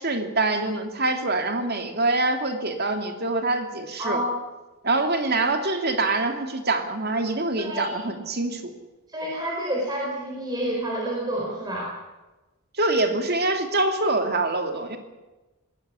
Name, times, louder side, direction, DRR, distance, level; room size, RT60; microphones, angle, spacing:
voice 1, 0.0-4.2 4.8-8.6 12.8-15.0, right 2 dB, 45° right, 5 dB, 2.6 m, -25 dB
voice 2, 4.0-4.4 6.0-6.1 7.6-8.0 9.1-11.9, right 1 dB, 20° right, -2 dB, 4.5 m, -29 dB
20.0 x 16.5 x 9.7 m, 1.1 s
head